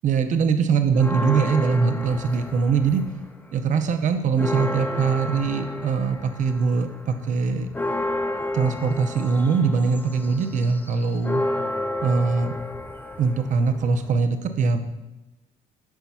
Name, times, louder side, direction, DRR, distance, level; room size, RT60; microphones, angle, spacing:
voice 1, 0.0-3.0 3.5-7.7 8.5-11.4 12.0-12.6 13.2-14.8, right 5 dB, 50° right, 8 dB, 0.6 m, -22 dB
sound 1, 0.9-3.3 3.7-14.2, left 1 dB, 10° left, 0.4 m, -31 dB
9.0 x 5.5 x 2.3 m, 0.97 s
cardioid pair, 110°, 17 cm